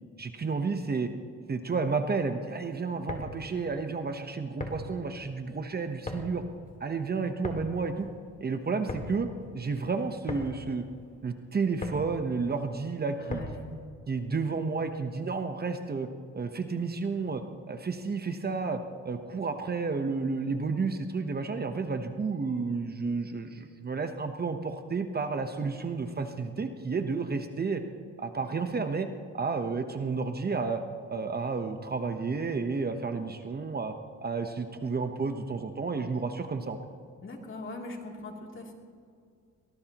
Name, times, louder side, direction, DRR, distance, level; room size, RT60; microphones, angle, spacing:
voice 1, 0.2-1.1 1.5-6.4 6.8-8.1 8.4-9.3 9.5-10.9 11.2-13.4 14.1-16.1 16.3-17.4 17.7-27.8 28.2-29.1 29.3-30.8 31.1-33.9 34.2-36.8, right 4 dB, 30° right, 7 dB, 1.0 m, -31 dB
sound 1, 2.9-13.8, left 2 dB, 25° left, 2.3 m, -41 dB
voice 2, 13.2-13.7 37.2-38.7, left 2 dB, 40° left, 0 dB, 3.1 m, -41 dB
23.0 x 19.0 x 3.0 m, 2.2 s
cardioid pair, 90°, 30 cm